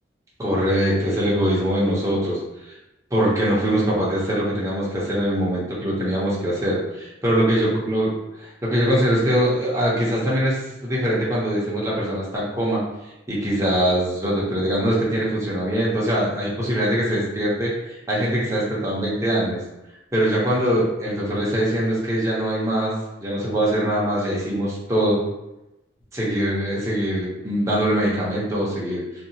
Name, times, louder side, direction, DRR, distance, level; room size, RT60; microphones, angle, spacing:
voice 1, 0.4-2.7 3.1-8.1 8.4-12.8 13.3-17.7 18.1-19.6 20.1-25.2 26.1-29.0, equal, 15° right, -6 dB, 0.7 m, -22 dB
2.7 x 2.3 x 2.8 m, 0.94 s
head